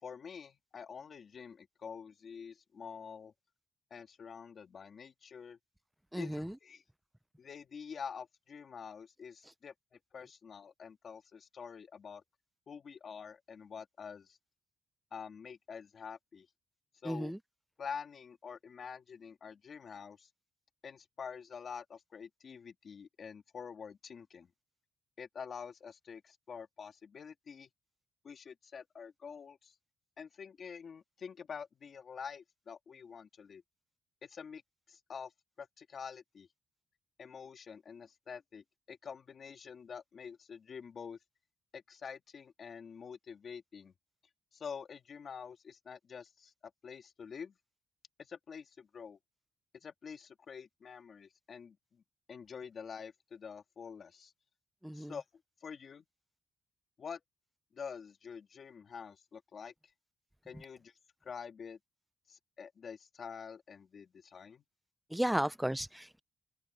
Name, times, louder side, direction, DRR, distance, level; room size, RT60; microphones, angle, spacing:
voice 1, 0.0-3.3 3.9-5.6 6.2-6.8 7.4-12.2 12.7-14.4 15.1-16.5 17.0-17.3 17.8-20.3 20.8-24.5 25.2-27.7 28.2-29.7 30.2-33.6 34.2-34.6 34.9-35.3 35.6-36.5 37.2-41.2 41.7-43.9 44.5-47.5 48.2-49.2 49.8-52.0 52.3-54.3 54.9-55.2 55.6-56.0 57.0-57.2 57.7-59.7 60.5-60.9 61.2-61.8 62.3-64.6, left 6 dB, 40° left, 3.0 m, -47 dB
voice 2, 6.1-6.5 17.0-17.4 54.8-55.1 65.1-66.2, equal, 5° right, 0.5 m, -34 dB
open air
cardioid pair, 165°, 0 cm